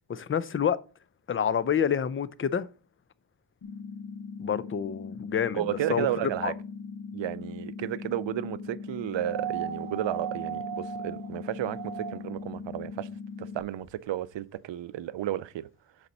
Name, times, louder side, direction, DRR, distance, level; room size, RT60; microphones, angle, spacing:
voice 1, 0.1-0.8 1.3-2.7 4.4-5.6 5.9-6.1 6.4-6.5, left 8 dB, 30° left, 0.3 m, -27 dB
sound 1, 3.6-13.6, left 5 dB, 50° left, 1.0 m, -40 dB
voice 2, 5.5-6.5 7.1-13.1 13.4-15.7, right 12 dB, 65° right, 0.5 m, -32 dB
sound 2, 9.2-12.5 13.9-14.0, right 10 dB, 45° right, 1.1 m, -37 dB
6.9 x 4.2 x 5.2 m
wide cardioid pair, 155°, 48 cm